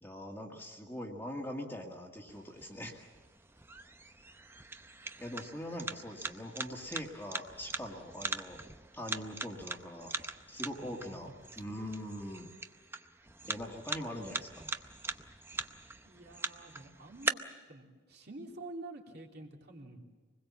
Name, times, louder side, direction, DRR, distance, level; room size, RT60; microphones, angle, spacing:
voice 1, 0.0-3.1 5.2-8.6 8.9-10.1 10.5-12.5 13.4-14.7, equal, 10° left, 0 dB, 2.0 m, -42 dB
sound 1, 2.3-17.3, right 3 dB, 10° right, 0.6 m, -42 dB
voice 2, 10.8-11.2 16.0-17.4 17.7-20.1, right 2 dB, 50° right, 0 dB, 3.0 m, -48 dB
25.5 x 20.5 x 7.4 m, 1.4 s
head